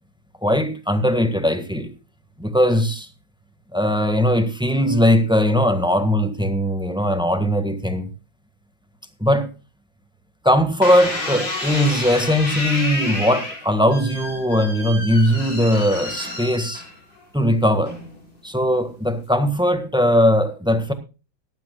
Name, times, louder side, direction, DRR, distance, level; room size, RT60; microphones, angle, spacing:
voice 1, 0.4-1.9 2.4-3.1 3.7-8.1 9.2-9.5 10.4-16.8 17.3-18.0 18.4-20.9, equal, 5° right, 1.4 m, -19 dB
sound 1, 10.8-17.2 17.9-18.3, left 2 dB, 75° left, 5.6 m, -30 dB
18.0 x 12.5 x 2.3 m
omnidirectional pair, 2.0 m